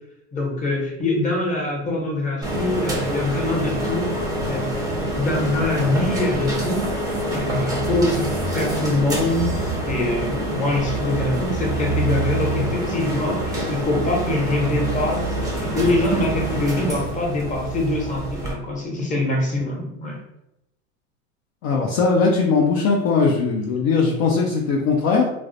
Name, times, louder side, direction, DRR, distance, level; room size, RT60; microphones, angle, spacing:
voice 1, 0.3-4.1 4.4-4.7 5.1-6.8 7.3-20.2, left 2 dB, 20° left, -1 dB, 0.8 m, -24 dB
sound 1, 2.4-18.5, right 1 dB, 10° right, 0.6 m, -26 dB
voice 2, 21.6-25.3, left 4 dB, 50° left, -1 dB, 0.5 m, -19 dB
2.3 x 2.1 x 2.6 m, 0.86 s
hypercardioid pair, 105°, 40 cm